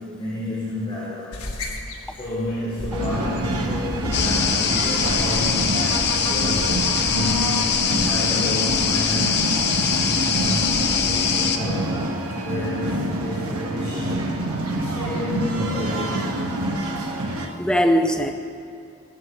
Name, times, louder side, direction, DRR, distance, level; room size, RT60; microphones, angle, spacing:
voice 1, 0.0-1.6 2.1-5.8 6.3-9.5 9.9-10.0 10.3-12.0 12.4-14.5 14.7-16.3, left 1 dB, 30° left, -12 dB, 3.6 m, -30 dB
sound 1, 1.3-11.1, left 1 dB, 85° left, 1.6 m, -35 dB
sound 2, 2.9-17.5, right 1 dB, 85° right, 1.4 m, -27 dB
sound 3, 4.1-11.6, left 7 dB, 45° left, 0.8 m, -23 dB
voice 2, 17.4-18.3, equal, 5° left, 4 dB, 0.7 m, -21 dB
17.5 x 13.5 x 3.2 m, 2.6 s
head